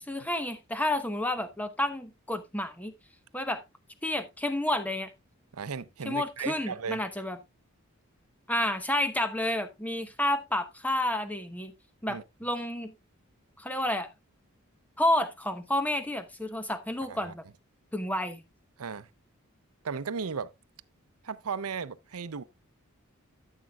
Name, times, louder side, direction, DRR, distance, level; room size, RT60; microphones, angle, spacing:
voice 1, 0.1-2.9 3.3-3.6 4.0-5.1 6.0-7.4 8.5-11.7 12.0-12.9 13.6-14.1 15.0-17.4 17.9-18.4, left 1 dB, 5° left, 1.0 m, -30 dB
voice 2, 5.5-7.0 12.1-12.2 17.1-17.3 18.8-19.1 19.8-20.5 21.2-22.4, right 5 dB, 85° right, 0.6 m, -35 dB
13.5 x 7.4 x 2.4 m
head